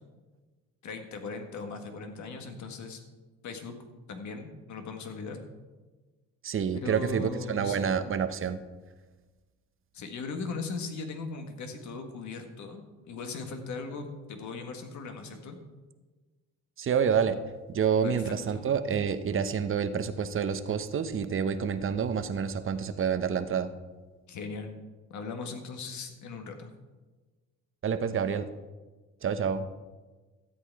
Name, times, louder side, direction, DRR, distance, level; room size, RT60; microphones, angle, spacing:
voice 1, 0.8-3.0 3.4-3.8 4.1-5.4 6.7-8.0 9.9-15.6 18.0-18.6 24.3-24.7 25.1-26.8, left 4 dB, 70° left, 5 dB, 1.7 m, -39 dB
voice 2, 6.4-8.6 16.8-17.4 17.7-23.7 27.8-28.5 29.2-29.7, right 7 dB, 45° right, 10 dB, 0.9 m, -28 dB
13.0 x 8.3 x 4.7 m, 1.3 s
cardioid pair, 90°, 30 cm